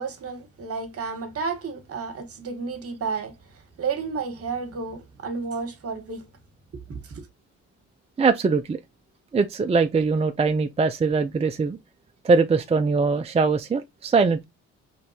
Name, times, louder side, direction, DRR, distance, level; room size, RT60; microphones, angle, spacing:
voice 1, 0.0-3.3 3.8-6.3 6.7-6.8 7.1-7.3, right 5 dB, 50° right, 1.4 m, -31 dB
voice 2, 8.2-8.8 9.3-11.8 12.2-14.4, right 4 dB, 20° right, 0.5 m, -22 dB
4.4 x 3.3 x 2.7 m
cardioid pair, 90°, 30 cm